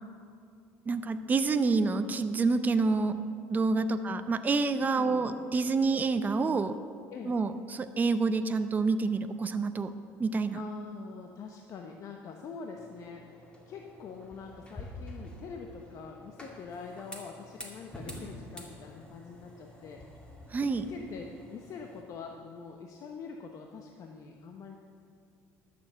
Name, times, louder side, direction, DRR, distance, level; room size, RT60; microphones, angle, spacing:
voice 1, 0.9-3.2 3.5-6.8 7.3-9.9 10.2-10.6 20.5-20.8, right 4 dB, 25° right, 10 dB, 0.6 m, -28 dB
voice 2, 3.7-4.1 4.8-5.4 7.1-7.3 10.5-20.2 20.6-24.8, left 5 dB, 50° left, 3 dB, 0.9 m, -44 dB
sound 1, 12.7-22.0, left 1 dB, 15° left, 2.2 m, -48 dB
12.0 x 7.0 x 7.5 m, 2.3 s
supercardioid pair, 95°, 7 cm